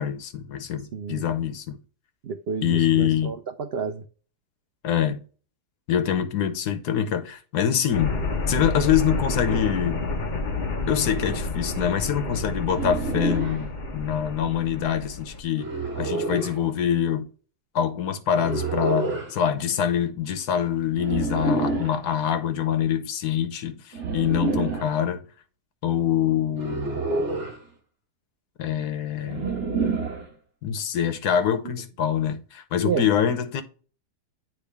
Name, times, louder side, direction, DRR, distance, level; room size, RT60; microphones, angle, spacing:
voice 1, 0.0-1.8 2.6-3.3 4.8-5.2 5.9-8.2 8.5-10.0 10.9-17.2 17.7-25.2 25.8-27.0 28.6-29.5 30.6-33.6, left 9 dB, 70° left, 1.4 m, -25 dB
voice 2, 0.9-1.2 2.2-4.0 32.8-33.1, right 6 dB, 85° right, 0.5 m, -30 dB
sound 1, 7.9-15.4, left 2 dB, 35° left, 0.9 m, -30 dB
sound 2, 12.7-13.6 15.6-16.6 18.3-19.3 21.0-22.0 23.9-24.9 26.6-27.6 29.3-30.3, right 3 dB, 45° right, 1.9 m, -28 dB
10.0 x 3.4 x 3.4 m
omnidirectional pair, 1.8 m